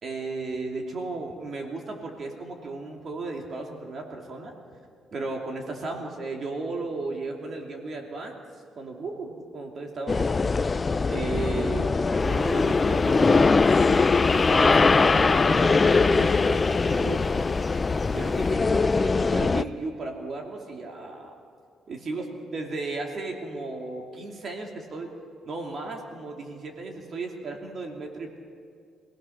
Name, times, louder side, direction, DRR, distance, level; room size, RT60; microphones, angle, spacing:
voice 1, 0.0-4.5 5.1-8.4 8.7-10.6 11.1-11.9 12.2-13.6 14.3-17.3 18.1-21.3 21.9-25.1 25.4-28.4, right 3 dB, 50° right, 1 dB, 2.8 m, -35 dB
sound 1, 10.1-19.6, left 4 dB, 30° left, 0.5 m, -21 dB
sound 2, 12.2-18.5, left 1 dB, 5° left, 6.1 m, -51 dB
27.0 x 18.0 x 5.9 m, 2.3 s
cardioid pair, 90°, 0 cm